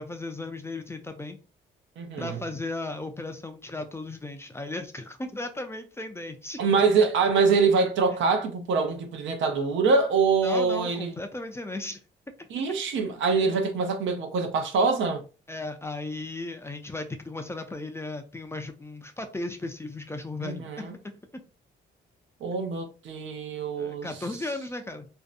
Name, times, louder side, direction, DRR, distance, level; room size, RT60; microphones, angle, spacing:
voice 1, 0.0-1.4 2.2-6.6 10.4-12.0 12.4-12.5 15.5-21.4 23.8-25.1, left 2 dB, 15° left, 0.4 m, -36 dB
voice 2, 2.0-2.4 6.6-11.2 12.5-15.2 20.4-20.9 22.4-24.1, right 4 dB, 75° right, 0.6 m, -24 dB
2.6 x 2.1 x 2.4 m
cardioid pair, 90°, 20 cm